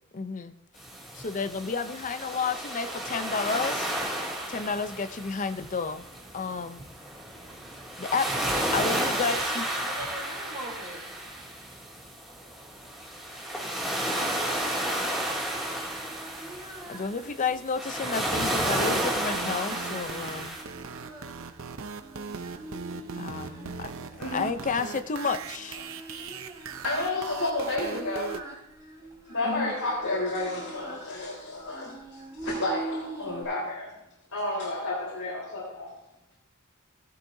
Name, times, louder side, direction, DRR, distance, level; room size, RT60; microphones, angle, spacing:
voice 1, 0.1-0.5 1.1-3.9 4.5-6.1 6.3-6.9 8.0-8.3 8.7-9.7 16.9-20.6 23.1-25.8 29.4-29.7, left 5 dB, 35° left, 11 dB, 0.6 m, -31 dB
sound 1, 0.8-20.6, right 1 dB, ahead, 2.5 m, -32 dB
voice 2, 8.2-11.6, right 1 dB, 35° right, -5 dB, 3.2 m, -41 dB
Singing, 14.7-33.4, right 2 dB, 20° right, 4.0 m, -44 dB
sound 2, 18.3-28.4, right 5 dB, 65° right, 0.7 m, -39 dB
voice 3, 26.1-26.5 26.8-28.5 29.2-33.9 34.3-36.0, left 2 dB, 85° left, -5 dB, 3.8 m, -31 dB
16.0 x 12.0 x 2.7 m, 0.86 s
head